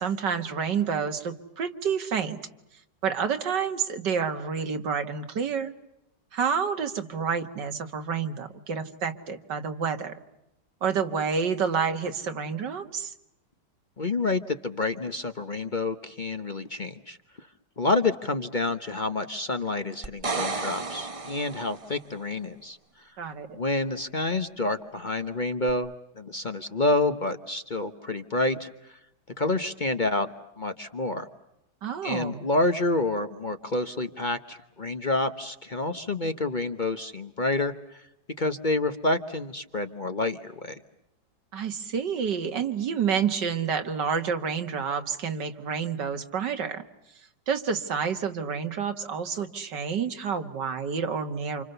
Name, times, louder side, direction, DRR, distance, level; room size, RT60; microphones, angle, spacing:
voice 1, 0.0-2.4 3.0-5.7 6.3-10.1 10.8-13.1 23.2-23.6 31.8-32.5 41.5-46.8 47.5-51.6, right 6 dB, 85° right, 7 dB, 2.3 m, -29 dB
voice 2, 14.0-17.5 17.8-22.8 23.5-29.0 29.4-30.3 30.6-31.3 32.0-38.0 38.4-40.8, left 2 dB, 35° left, 8 dB, 1.0 m, -28 dB
sound 1, 20.0-22.0 25.7-25.8, right 3 dB, 25° right, 0.9 m, -32 dB
29.0 x 27.5 x 6.8 m, 0.85 s
omnidirectional pair, 1.8 m